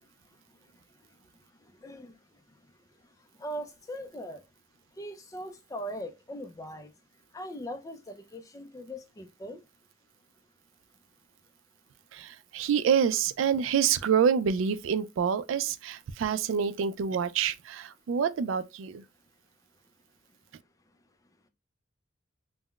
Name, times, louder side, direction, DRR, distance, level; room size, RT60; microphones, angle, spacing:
voice 1, 1.8-2.1 3.4-4.4 5.0-6.9 7.3-9.6, equal, 15° left, 0.3 m, -40 dB
voice 2, 12.1-19.0, right 7 dB, 80° right, 0.3 m, -27 dB
3.7 x 2.1 x 2.2 m
head